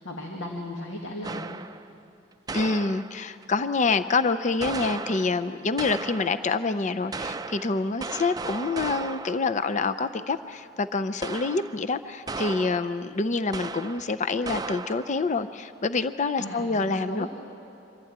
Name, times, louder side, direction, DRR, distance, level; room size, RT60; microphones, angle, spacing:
voice 1, 0.0-1.6 16.4-17.3, left 1 dB, 85° left, 0 dB, 1.9 m, -36 dB
sound 1, 1.2-1.9 2.5-3.4 4.6-6.6 7.1-9.6 11.2-11.9 12.3-13.1 13.5-14.2 14.4-15.3, right 3 dB, 20° right, 0.5 m, -36 dB
voice 2, 2.5-17.3, left 4 dB, 40° left, 11 dB, 0.5 m, -27 dB
25.0 x 14.5 x 8.8 m, 2.9 s
head